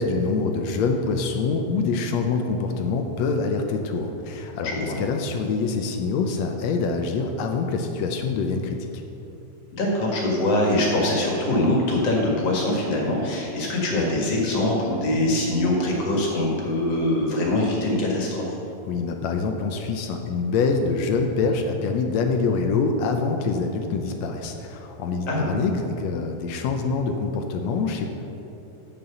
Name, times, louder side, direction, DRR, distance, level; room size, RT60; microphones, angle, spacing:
voice 1, 0.0-8.9 18.9-28.1, left 4 dB, 75° left, 4 dB, 1.8 m, -25 dB
voice 2, 4.6-5.0 9.8-18.6 25.3-25.6, left 1 dB, 60° left, -2 dB, 2.8 m, -23 dB
7.8 x 7.6 x 6.8 m, 3.0 s
omnidirectional pair, 3.3 m